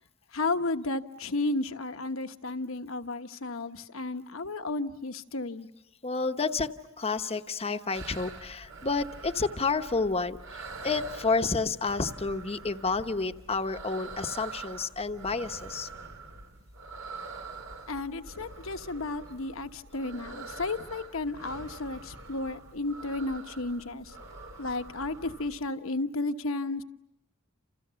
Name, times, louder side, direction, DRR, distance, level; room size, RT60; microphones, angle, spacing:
voice 1, 0.3-5.7 17.9-24.1 24.6-26.8, left 2 dB, 70° left, 8 dB, 1.2 m, -33 dB
voice 2, 6.0-6.7 7.0-15.9, left 4 dB, 30° left, 8 dB, 1.0 m, -30 dB
sound 1, 7.9-25.6, right 3 dB, 85° right, 4.5 m, -45 dB
29.5 x 28.5 x 7.0 m, 0.82 s
head